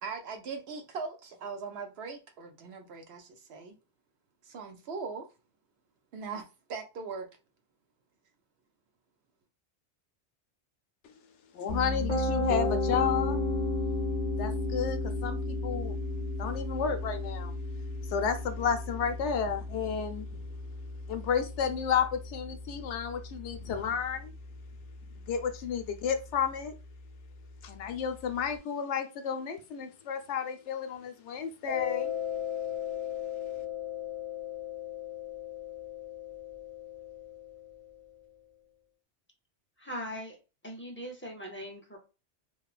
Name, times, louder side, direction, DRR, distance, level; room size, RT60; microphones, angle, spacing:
voice 1, 0.0-3.7 4.4-5.3 6.1-6.4 6.7-7.3, right 5 dB, 70° right, 0.8 m, -40 dB
voice 2, 11.5-13.4 14.4-17.5 18.0-20.4 21.1-24.3 25.3-26.7 27.6-32.1, left 7 dB, 80° left, 0.9 m, -32 dB
Piano, 11.7-23.6, left 2 dB, 45° left, 0.8 m, -33 dB
Mallet percussion, 31.7-38.0, left 10 dB, 35° right, 0.6 m, -37 dB
voice 3, 39.8-40.4 40.6-42.0, equal, 15° left, 0.4 m, -40 dB
3.0 x 2.1 x 2.3 m
omnidirectional pair, 1.2 m